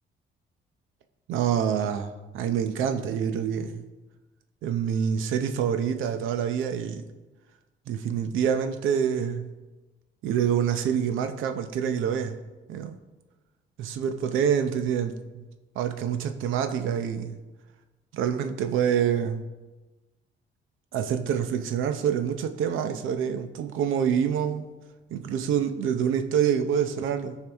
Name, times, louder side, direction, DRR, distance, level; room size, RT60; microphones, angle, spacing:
voice 1, 1.3-3.9 4.6-7.0 7.9-9.5 10.2-12.4 12.7-13.0 13.8-15.5 15.8-17.4 18.1-19.5 20.9-24.8 25.1-27.4, right 8 dB, 90° right, 8 dB, 0.7 m, -26 dB
14.0 x 4.7 x 3.5 m, 1.2 s
cardioid pair, 90°, 20 cm